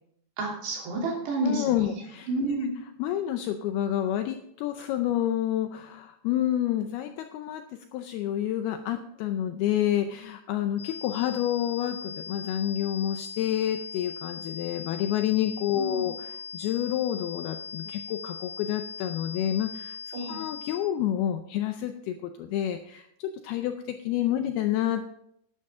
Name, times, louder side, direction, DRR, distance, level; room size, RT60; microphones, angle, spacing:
voice 1, 0.4-2.0 2.3-2.8 15.8-16.0 20.1-20.4, right 2 dB, 70° right, -2 dB, 5.1 m, -30 dB
voice 2, 1.4-2.3 3.0-7.6 7.9-25.1, left 11 dB, 80° left, 7 dB, 2.3 m, -29 dB
sound 1, 10.8-20.8, left 5 dB, 20° left, 3.2 m, -40 dB
12.0 x 11.0 x 3.6 m, 0.73 s
omnidirectional pair, 5.1 m